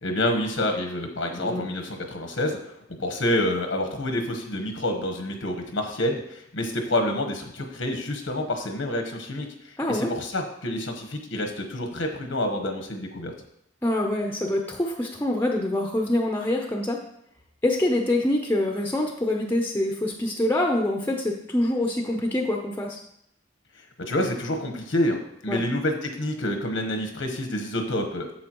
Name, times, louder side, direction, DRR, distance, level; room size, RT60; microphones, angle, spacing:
voice 1, 0.0-2.6 3.0-9.5 9.9-13.3 24.0-28.3, left 1 dB, 90° left, 4 dB, 1.1 m, -28 dB
voice 2, 9.8-10.1 13.8-17.0 17.6-23.0 25.5-25.6, left 1 dB, 10° left, 1 dB, 0.6 m, -25 dB
8.6 x 6.9 x 3.0 m, 0.73 s
head